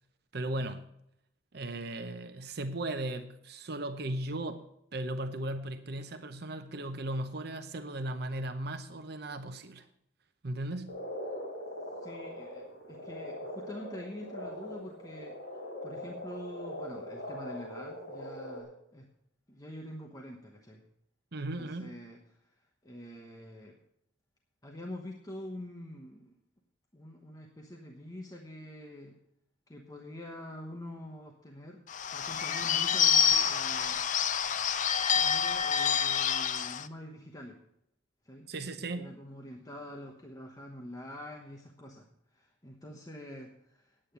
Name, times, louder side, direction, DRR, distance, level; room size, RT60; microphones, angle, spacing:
voice 1, 0.3-0.8 1.5-9.9 10.4-10.9 21.3-22.0 38.5-39.1, right 1 dB, 55° right, 0.8 m, -37 dB
Frog, 10.9-18.6, left 1 dB, 70° left, 3.9 m, -41 dB
voice 2, 12.0-15.4 15.8-19.1 19.5-20.8 21.6-22.5 22.8-23.8 24.6-26.3 26.9-29.2 29.7-31.8 32.1-34.0 35.1-37.6 38.2-38.5 38.9-44.1, left 1 dB, 20° left, 1.1 m, -46 dB
Bird / Bell, 31.9-36.9, left 7 dB, 40° left, 0.5 m, -27 dB
9.7 x 8.8 x 6.9 m
head